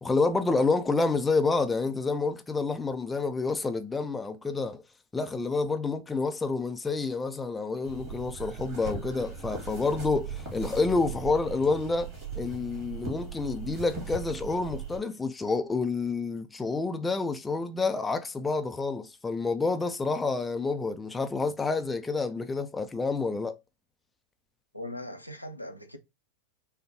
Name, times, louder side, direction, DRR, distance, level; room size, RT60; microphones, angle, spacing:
voice 1, 0.0-4.8 5.1-23.6, left 3 dB, 10° left, 0.4 m, -28 dB
sound 1, 7.8-15.0, right 6 dB, 40° right, 2.3 m, -39 dB
voice 2, 24.7-26.0, left 1 dB, 90° left, 0.6 m, -39 dB
5.1 x 2.2 x 2.8 m
figure-of-eight pair, 90°, 0 cm